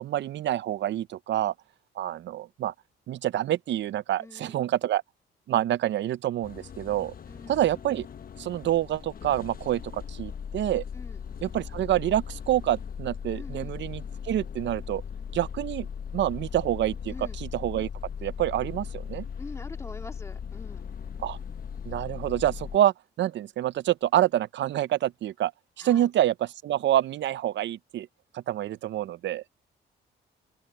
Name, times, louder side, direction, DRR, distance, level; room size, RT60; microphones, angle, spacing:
voice 1, 0.0-1.5 2.0-2.7 3.1-5.0 5.5-7.1 7.5-8.1 8.4-10.8 11.4-15.0 15.3-15.9 16.1-17.9 18.2-19.3 21.2-21.4 21.9-25.5 25.8-26.3 26.6-28.1 28.3-29.4, right 12 dB, 65° right, 0.6 m, -27 dB
voice 2, 4.2-4.6 7.3-7.7 10.9-11.2 13.3-13.8 17.1-17.4 19.4-20.9 25.8-26.1, left 2 dB, 15° left, 2.1 m, -45 dB
sound 1, 6.4-22.8, left 7 dB, 45° left, 1.1 m, -38 dB
open air
cardioid pair, 90°, 20 cm